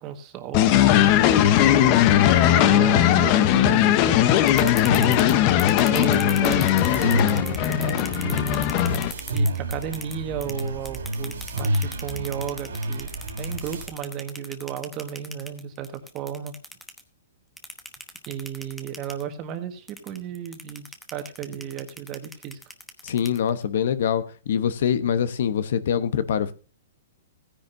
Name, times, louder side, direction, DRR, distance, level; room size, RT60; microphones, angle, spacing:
voice 1, 0.0-1.9 2.5-5.2 5.9-8.6 9.3-13.1 13.4-16.5 18.3-22.6, right 9 dB, 30° right, 1.5 m, -34 dB
sound 1, 0.5-9.1, left 12 dB, 35° left, 0.8 m, -19 dB
sound 2, 4.3-10.1 10.4-17.0 17.6-19.2 19.9-23.6, left 1 dB, 5° left, 1.0 m, -38 dB
sound 3, 4.8-13.9, right 1 dB, 85° right, 3.3 m, -30 dB
voice 2, 23.0-26.5, left 8 dB, 65° left, 1.0 m, -24 dB
16.0 x 10.0 x 2.7 m
hypercardioid pair, 155°, 0 cm